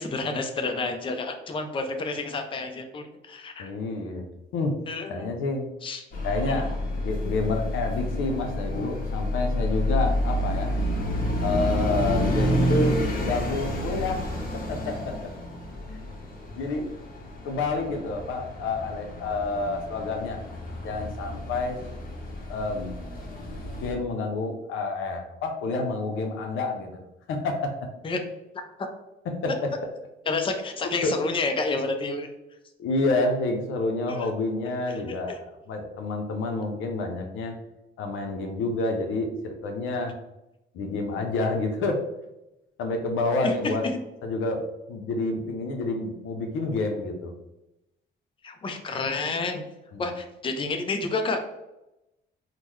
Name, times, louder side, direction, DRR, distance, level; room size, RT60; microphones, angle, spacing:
voice 1, 0.0-3.7 4.9-5.3 5.8-6.0 6.5-6.6 28.0-28.2 30.3-32.3 34.1-34.3 34.9-35.0 35.3-35.4 43.4-43.9 48.4-49.6 50.0-51.4, left 3 dB, 25° left, 5 dB, 0.4 m, -29 dB
voice 2, 3.6-4.3 4.5-4.8 5.1-5.7 6.2-10.7 11.4-14.2 14.5-15.2 15.9-16.0 16.6-16.9 17.4-20.4 20.8-21.8 22.5-23.0 23.8-27.0 27.3-27.7 29.3-29.7 31.0-31.1 32.8-37.5 38.0-40.1 40.7-42.0 42.8-43.8 44.2-44.6 44.9-47.3 49.9-50.1, left 3 dB, 85° left, 4 dB, 0.6 m, -28 dB
sound 1, 6.1-23.9, left 1 dB, 45° left, 1.0 m, -29 dB
3.6 x 2.1 x 3.0 m, 0.93 s
cardioid pair, 90°, 20 cm